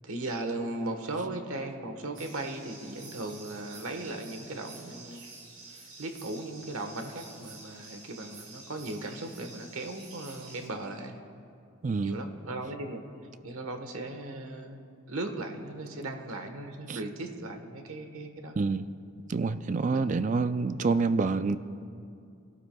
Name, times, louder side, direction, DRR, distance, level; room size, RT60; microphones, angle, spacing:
voice 1, 0.0-5.3 5.6-11.2 12.0-13.1 13.4-18.6 19.9-20.6, right 2 dB, 90° right, 5 dB, 1.2 m, -37 dB
sound 1, 2.1-10.7, right 3 dB, 70° right, 3.9 m, -49 dB
voice 2, 11.8-12.2 16.9-17.0 18.6-18.8 19.3-21.6, right 4 dB, 35° right, 12 dB, 0.3 m, -27 dB
29.0 x 12.5 x 2.3 m, 2.4 s
head